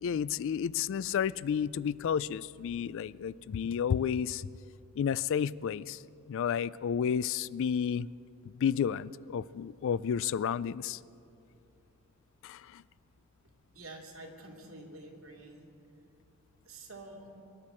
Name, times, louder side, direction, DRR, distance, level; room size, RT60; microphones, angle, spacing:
voice 1, 0.0-4.4 5.0-6.0 6.3-8.1 8.6-11.0, left 8 dB, 65° left, 20 dB, 0.3 m, -31 dB
voice 2, 13.7-15.7 16.7-17.3, right 2 dB, 75° right, 0 dB, 2.5 m, -48 dB
24.5 x 11.5 x 4.4 m, 2.6 s
head